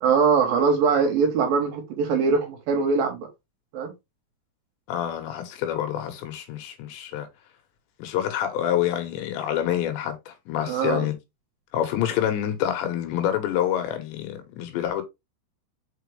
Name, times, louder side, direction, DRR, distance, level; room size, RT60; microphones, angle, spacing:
voice 1, 0.0-3.3 3.7-3.9 10.7-11.0, right 5 dB, 65° right, 2.7 m, -22 dB
voice 2, 4.9-7.3 8.0-11.1 11.7-15.0, left 11 dB, 80° left, 3.5 m, -27 dB
6.0 x 5.3 x 3.3 m
omnidirectional pair, 5.1 m